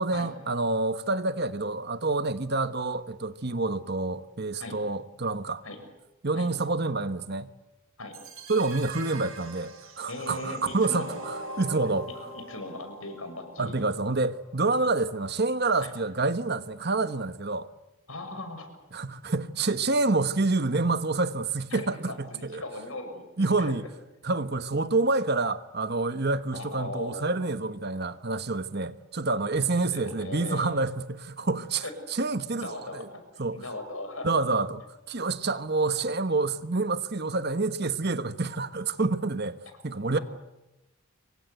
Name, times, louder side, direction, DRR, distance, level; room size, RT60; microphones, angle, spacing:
voice 1, 0.0-5.6 6.2-7.5 8.5-12.1 13.6-17.7 18.9-22.6 23.4-23.8 24.2-31.8 32.1-33.1 33.4-33.6 34.2-39.6 39.8-40.2, right 3 dB, 50° right, 1.2 m, -28 dB
sound 1, 8.1-14.1, right 1 dB, 80° right, 7.9 m, -43 dB
voice 2, 10.1-11.3 12.3-13.9 15.8-15.9 18.1-18.7 21.7-23.3 23.6-23.7 26.5-27.4 29.9-30.7 31.8-31.9 32.6-33.2 33.5-34.3 40.1-40.2, left 2 dB, 80° left, 6.5 m, -38 dB
27.0 x 23.5 x 8.2 m
head